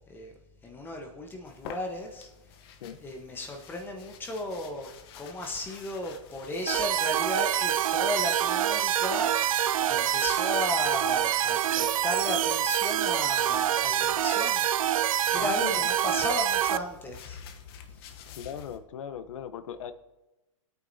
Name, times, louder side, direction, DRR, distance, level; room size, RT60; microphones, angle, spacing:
voice 1, 0.6-2.3 3.0-4.9 5.2-9.3 9.9-14.7 15.3-17.4, left 1 dB, 10° left, 2 dB, 1.1 m, -35 dB
sound 1, 1.4-14.2 15.2-18.8, left 8 dB, 45° left, 1.0 m, -50 dB
sound 2, 6.7-16.8, right 11 dB, 90° right, 0.5 m, -26 dB
voice 2, 15.4-15.9 18.2-19.9, left 8 dB, 75° left, 12 dB, 0.9 m, -39 dB
22.5 x 8.8 x 2.8 m, 1.0 s
hypercardioid pair, 150°, 17 cm